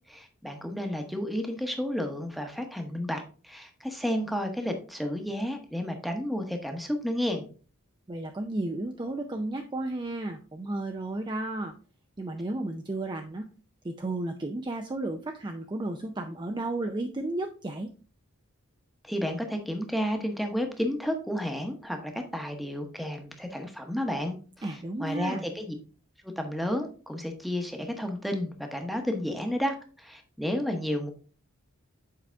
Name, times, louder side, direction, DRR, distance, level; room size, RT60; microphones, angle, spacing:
voice 1, 0.1-7.5 19.0-24.7 25.0-25.7 26.4-31.1, equal, ahead, 5 dB, 0.9 m, -31 dB
voice 2, 8.1-11.7 12.2-13.5 13.8-17.9 24.6-25.4, right 2 dB, 20° right, 5 dB, 0.4 m, -33 dB
7.4 x 4.9 x 3.4 m, 0.39 s
head